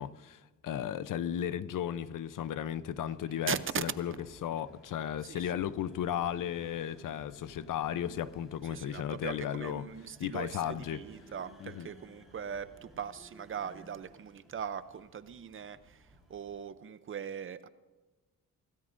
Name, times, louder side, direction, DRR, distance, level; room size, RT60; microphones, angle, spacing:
voice 1, 0.0-4.1 4.4-9.9 10.2-11.0 11.6-11.9, left 10 dB, 75° left, 0.7 m, -35 dB
sound 1, 1.8-16.7, right 1 dB, ahead, 4.5 m, -58 dB
voice 2, 3.5-3.8 5.3-5.4 8.7-15.8 16.3-17.7, right 8 dB, 40° right, 0.6 m, -40 dB
25.0 x 16.5 x 2.6 m
wide cardioid pair, 145°, 32 cm